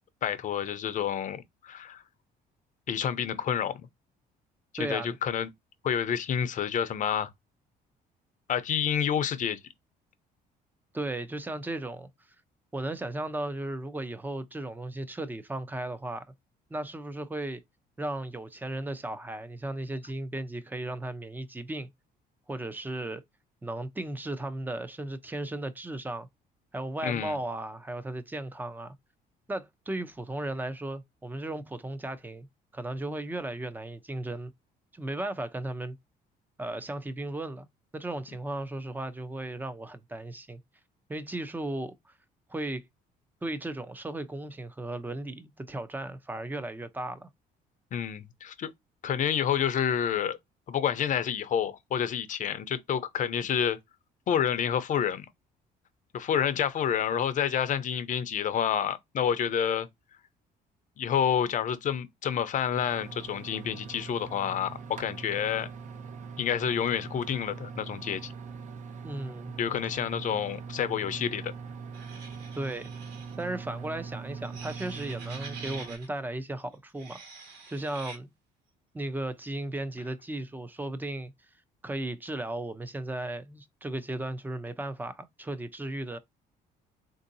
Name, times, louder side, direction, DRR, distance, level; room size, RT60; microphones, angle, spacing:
voice 1, 0.2-2.0 2.9-3.9 4.8-5.5 5.8-7.3 8.5-9.6 27.0-27.4 47.9-48.7 49.0-50.4 50.7-53.8 54.3-55.3 56.1-59.9 61.0-65.7 66.4-68.3 69.6-71.5, left 8 dB, 50° left, 0.7 m, -29 dB
voice 2, 4.8-5.2 10.9-12.1 12.7-16.2 16.7-17.6 18.0-21.9 22.5-23.2 23.6-26.3 26.7-28.9 29.5-32.5 32.7-34.5 34.9-36.0 36.6-37.7 37.9-40.6 41.1-42.1 42.5-42.8 43.4-47.3 69.0-69.5 72.6-72.9 73.4-77.2 77.7-78.3 78.9-81.3 81.8-86.2, right 1 dB, 10° right, 0.6 m, -35 dB
sound 1, 62.7-76.0, right 5 dB, 45° right, 0.7 m, -42 dB
sound 2, 71.9-73.5 74.4-76.1 76.9-78.2, right 4 dB, 90° right, 1.4 m, -46 dB
3.7 x 2.7 x 2.6 m
cardioid pair, 110°, 17 cm